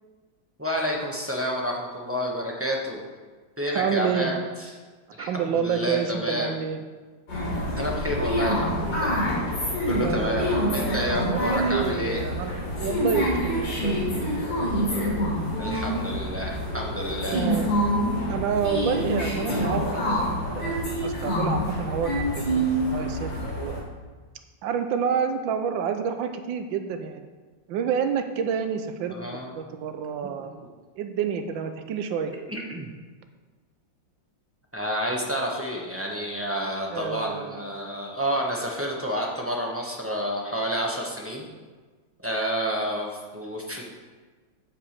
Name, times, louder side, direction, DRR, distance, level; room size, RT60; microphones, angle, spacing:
voice 1, 0.6-3.0 3.6-4.3 4.6-4.7 5.1-6.5 7.8-9.2 9.9-12.2 15.6-17.4 29.1-29.6 30.6-30.7 32.5-32.9 34.7-41.5 42.2-43.8, equal, 10° right, -2 dB, 0.8 m, -29 dB
voice 2, 3.7-4.3 5.2-6.8 10.0-12.5 12.8-14.3 17.3-17.7 18.3-22.6 22.9-23.3 23.6-23.9 24.6-27.3 27.7-30.5 30.9-32.3 36.9-37.7, right 7 dB, 80° right, 7 dB, 1.5 m, -29 dB
sound 1, 7.3-23.8, equal, 70° left, 3.5 m, -27 dB
sound 2, 7.5-13.9, left 1 dB, 50° left, 2.3 m, -38 dB
9.9 x 4.8 x 7.3 m, 1.4 s
omnidirectional pair, 2.1 m